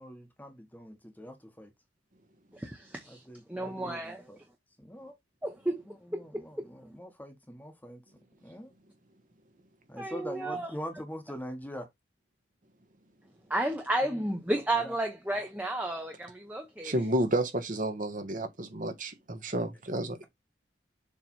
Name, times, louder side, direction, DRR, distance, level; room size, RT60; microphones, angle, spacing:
voice 1, 0.0-1.7 3.1-4.4 4.8-5.2 5.8-8.0 8.4-8.7 9.9-11.9 14.0-14.2 14.7-14.9, equal, 10° left, 1.2 m, -43 dB
voice 2, 2.5-3.2 3.5-4.2 5.4-5.8 6.1-6.2 10.0-10.7 13.5-16.9, right 1 dB, 10° right, 0.9 m, -32 dB
voice 3, 16.8-20.3, right 1 dB, 45° right, 1.3 m, -31 dB
7.0 x 3.3 x 4.3 m
head